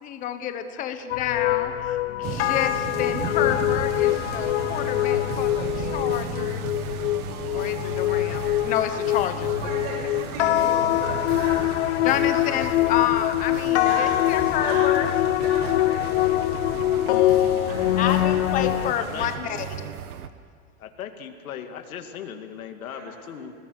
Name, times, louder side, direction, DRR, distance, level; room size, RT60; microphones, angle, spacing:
voice 1, 0.0-6.6 7.5-9.5 12.0-15.1 18.0-19.6, left 9 dB, 20° left, 8 dB, 1.0 m, -29 dB
sound 1, 1.1-18.9, left 15 dB, 55° left, 0.5 m, -24 dB
sound 2, 2.2-19.4, right 7 dB, 25° right, 1.3 m, -39 dB
sound 3, 4.1-20.3, right 9 dB, 90° right, 1.4 m, -37 dB
voice 2, 9.6-12.5 13.8-16.4 17.7-18.4 22.9-23.4, right 3 dB, 40° right, 0 dB, 5.6 m, -36 dB
voice 3, 19.0-19.5 20.8-23.5, left 8 dB, 75° left, 6 dB, 2.4 m, -38 dB
30.0 x 19.5 x 6.6 m, 2.1 s
supercardioid pair, 170°, 43 cm